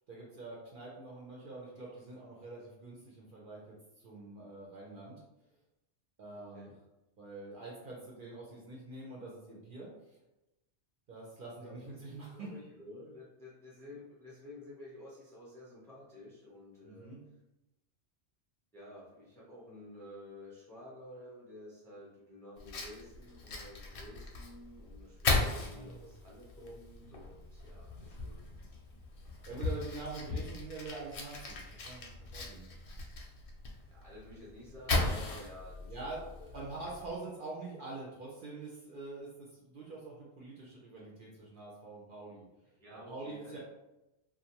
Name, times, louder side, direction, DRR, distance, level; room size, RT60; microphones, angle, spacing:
voice 1, 0.1-5.2 6.2-6.7 7.2-10.2 11.1-12.5 16.8-17.2 25.7-26.1 29.5-32.7 35.9-36.2 36.5-42.5 42.9-43.6, right 3 dB, 60° right, -4 dB, 0.6 m, -45 dB
voice 2, 6.3-6.7 11.6-11.9 12.3-17.1 18.7-28.5 33.8-36.5 42.8-43.6, left 1 dB, 5° left, -6 dB, 0.5 m, -51 dB
Fire, 22.6-37.2, left 3 dB, 60° left, 0.7 m, -38 dB
2.5 x 2.1 x 2.8 m, 0.95 s
omnidirectional pair, 1.2 m